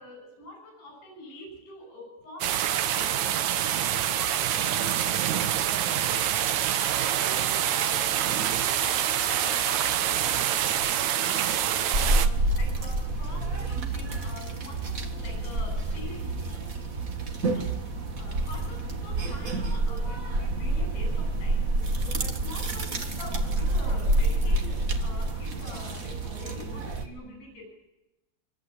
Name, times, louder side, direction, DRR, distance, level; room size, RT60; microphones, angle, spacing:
voice 1, 0.0-3.3 3.6-10.9 11.2-16.6 17.5-17.6 18.1-27.7, left 2 dB, 90° left, 2 dB, 9.1 m, -45 dB
sound 1, 2.4-12.3, right 10 dB, 75° right, 1.7 m, -26 dB
sound 2, 11.9-27.0, right 2 dB, 55° right, 0.9 m, -28 dB
26.5 x 24.0 x 8.6 m, 0.99 s
omnidirectional pair, 4.9 m